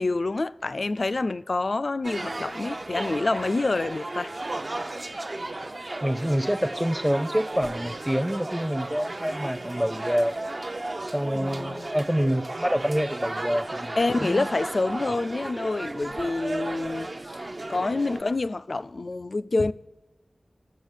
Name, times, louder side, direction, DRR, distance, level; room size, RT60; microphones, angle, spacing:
voice 1, 0.0-4.3 11.3-11.9 14.0-17.1 17.7-19.7, left 3 dB, 60° left, 0.3 m, -27 dB
sound 1, 2.0-18.2, right 2 dB, 45° right, 0.6 m, -34 dB
voice 2, 6.0-10.4 11.0-14.5, equal, 5° right, 0.6 m, -27 dB
12.0 x 7.1 x 8.1 m
wide cardioid pair, 65°, 0 cm